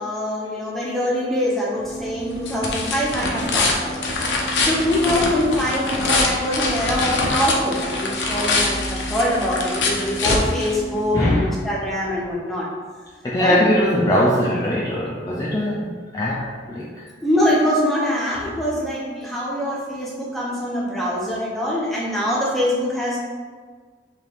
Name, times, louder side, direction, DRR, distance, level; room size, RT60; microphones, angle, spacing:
voice 1, 0.0-4.0 4.6-12.7 13.4-13.6 17.2-23.2, left 1 dB, ahead, -6 dB, 0.7 m, -23 dB
sound 1, 1.8-11.2, left 2 dB, 75° left, 0.6 m, -24 dB
voice 2, 11.1-11.6 13.2-17.1, equal, 20° left, -6 dB, 0.3 m, -21 dB
3.2 x 2.7 x 4.0 m, 1.6 s
head